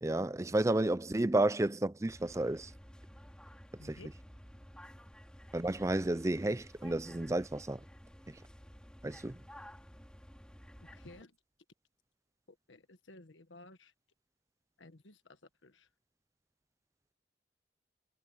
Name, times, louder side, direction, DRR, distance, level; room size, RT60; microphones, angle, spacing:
voice 1, 0.0-2.7 3.9-4.0 5.5-7.8 9.0-9.3, right 1 dB, 15° right, 0.5 m, -31 dB
sound 1, 2.1-11.2, equal, 5° left, 5.8 m, -53 dB
voice 2, 10.8-11.3 12.5-13.9 14.8-15.9, left 2 dB, 85° left, 1.5 m, -55 dB
head